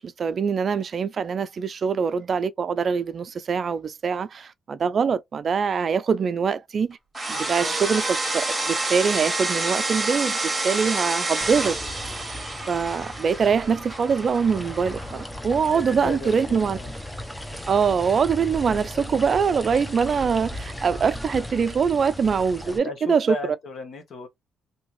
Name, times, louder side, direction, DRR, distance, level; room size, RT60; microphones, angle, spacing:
voice 1, 0.0-7.0 7.5-10.4 10.6-12.2 12.7-16.8 17.7-23.3, right 6 dB, 45° right, 0.4 m, -23 dB
sound 1, 7.1-15.3, right 2 dB, 15° right, 1.2 m, -28 dB
voice 2, 7.3-7.7 15.7-16.9 22.6-24.3, left 2 dB, 60° left, 1.1 m, -35 dB
sound 2, 11.4-22.8, left 1 dB, 5° left, 0.6 m, -37 dB
2.7 x 2.5 x 3.0 m
cardioid pair, 90°, 0 cm